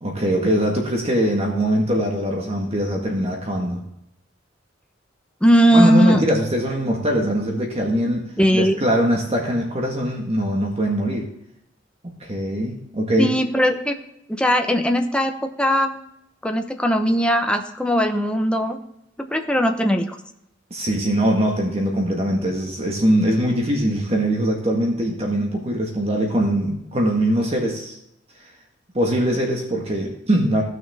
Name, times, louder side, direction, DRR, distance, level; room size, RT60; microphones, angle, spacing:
voice 1, 0.0-3.8 5.7-8.2 8.5-11.3 12.2-13.3 20.7-28.0 28.9-30.6, right 1 dB, 35° right, 0 dB, 1.6 m, -22 dB
voice 2, 5.4-6.2 8.4-8.7 13.2-13.9 14.3-16.0 16.4-18.8 19.2-20.2, equal, 5° left, 4 dB, 0.9 m, -19 dB
15.5 x 6.5 x 3.5 m, 0.80 s
head